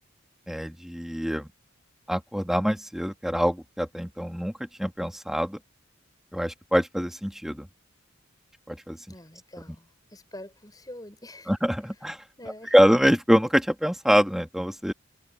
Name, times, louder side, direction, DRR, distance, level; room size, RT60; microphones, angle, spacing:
voice 1, 0.5-1.5 2.1-5.6 6.3-7.7 8.7-9.0 9.7-9.8 11.5-12.2 12.6-14.9, equal, ahead, 2.4 m, -24 dB
voice 2, 9.1-11.5 12.4-12.8, left 1 dB, 20° left, 6.7 m, -45 dB
head